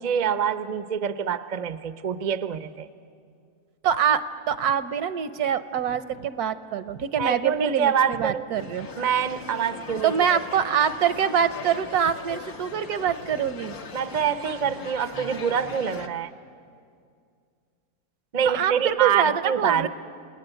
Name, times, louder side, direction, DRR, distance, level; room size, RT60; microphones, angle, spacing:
voice 1, 0.0-2.9 7.2-8.5 9.0-10.4 13.9-16.3 18.3-19.9, right 8 dB, 40° right, 11 dB, 0.6 m, -26 dB
voice 2, 3.8-8.9 10.0-13.8 18.4-19.9, right 8 dB, 75° right, 12 dB, 1.3 m, -25 dB
sound 1, 8.5-16.1, left 5 dB, 65° left, 1.8 m, -39 dB
28.5 x 19.0 x 9.0 m, 2.3 s
omnidirectional pair, 1.7 m